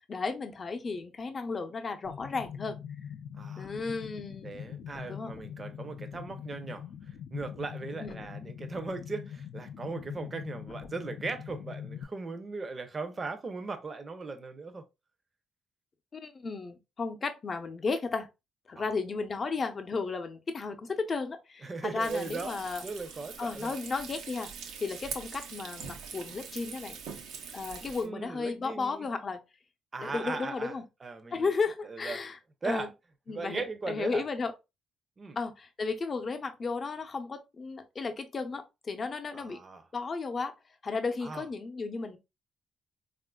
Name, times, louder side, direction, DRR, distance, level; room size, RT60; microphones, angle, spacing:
voice 1, 0.1-2.8 3.6-4.5 5.1-5.3 8.0-8.2 16.1-18.3 18.7-22.8 23.4-24.5 24.8-27.0 27.5-29.4 30.0-30.8 31.3-32.4 32.6-32.9 33.3-34.5 35.4-39.6 39.9-40.5 40.8-42.2, left 4 dB, 40° left, 0.6 m, -34 dB
sound 1, 2.0-12.0, left 8 dB, 75° left, 0.4 m, -43 dB
voice 2, 3.4-3.7 4.4-14.8 18.8-18.9 21.6-23.8 27.8-29.1 29.9-30.8 31.0-31.5 31.9-32.2 32.6-32.9 33.3-34.2 35.2-35.4 39.3-39.8 41.2-41.5, right 3 dB, 30° right, 0.6 m, -38 dB
Frying (food), 22.0-28.1, right 6 dB, 90° right, 0.6 m, -43 dB
3.6 x 2.5 x 2.2 m
cardioid pair, 90°, 0 cm